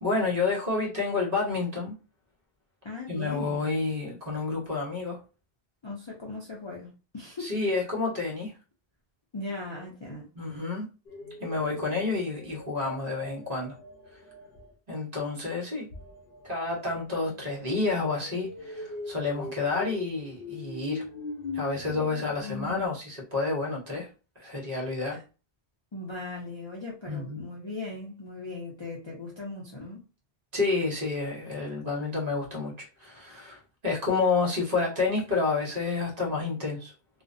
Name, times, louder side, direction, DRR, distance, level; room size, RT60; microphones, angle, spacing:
voice 1, 0.0-1.9 3.1-5.2 7.4-8.5 10.3-10.9 11.4-13.7 14.9-15.9 16.4-21.0 21.5-24.1 24.4-25.2 27.1-27.5 30.5-36.9, left 3 dB, 40° right, 1.0 m, -29 dB
voice 2, 2.8-3.6 5.8-7.5 9.3-10.3 25.1-25.2 25.9-30.0, left 2 dB, 40° left, 0.4 m, -38 dB
sound 1, 11.1-14.7 15.9-22.9, left 3 dB, 65° left, 0.8 m, -41 dB
2.5 x 2.1 x 2.5 m
omnidirectional pair, 1.0 m